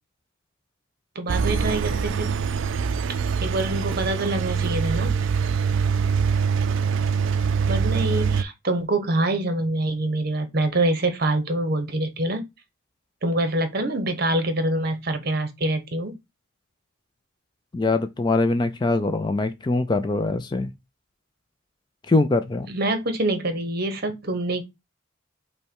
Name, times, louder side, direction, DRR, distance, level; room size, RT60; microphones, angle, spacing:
voice 1, 1.1-2.3 3.4-5.2 7.7-12.4 13.2-16.2 22.7-24.6, right 1 dB, 50° right, 0.9 m, -25 dB
Engine, 1.3-8.4, right 6 dB, 65° right, 0.3 m, -24 dB
voice 2, 17.7-20.7 22.1-22.7, left 2 dB, 20° left, 0.3 m, -23 dB
5.4 x 2.2 x 4.5 m
head